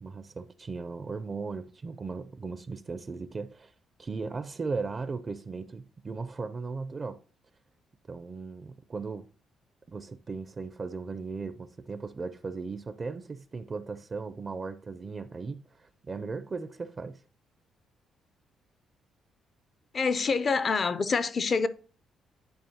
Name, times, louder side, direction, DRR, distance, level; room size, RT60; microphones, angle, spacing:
voice 1, 0.0-3.7 4.0-7.2 8.1-9.3 9.9-17.2, right 4 dB, 35° right, 0.4 m, -37 dB
voice 2, 19.9-21.7, left 4 dB, 45° left, 0.4 m, -26 dB
10.5 x 4.3 x 2.8 m
cardioid pair, 90°, 0 cm